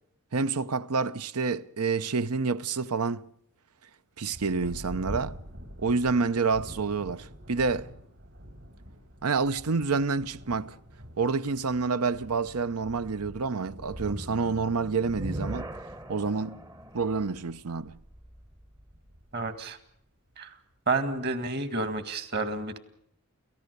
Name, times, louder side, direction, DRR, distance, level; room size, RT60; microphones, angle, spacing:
voice 1, 0.3-3.2 4.2-5.4 5.8-7.9 9.2-10.8 11.2-15.7 16.1-16.6 16.9-18.0, right 4 dB, 90° right, 0.8 m, -28 dB
Thunder, 4.3-20.3 21.1-21.2 21.8-22.2, equal, 65° right, 5.5 m, -46 dB
sound 1, 13.8-19.1, equal, 15° right, 0.8 m, -40 dB
voice 2, 19.3-19.8 20.4-20.5 20.9-22.8, right 3 dB, 45° right, 2.0 m, -30 dB
29.5 x 15.0 x 6.8 m
head